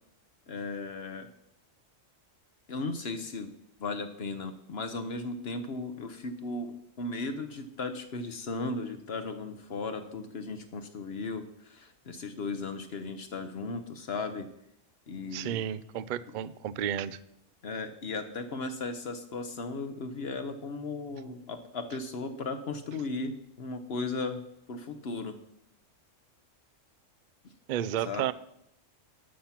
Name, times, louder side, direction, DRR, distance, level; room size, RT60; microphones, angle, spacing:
voice 1, 0.5-1.3 2.7-3.5 3.8-14.5 15.1-15.6 17.6-25.4 27.4-27.5 28.0-28.3, left 3 dB, 55° left, 8 dB, 1.0 m, -36 dB
voice 2, 15.3-17.2 27.7-28.3, right 10 dB, 65° right, 17 dB, 0.4 m, -32 dB
13.0 x 6.0 x 5.7 m, 0.77 s
omnidirectional pair, 1.3 m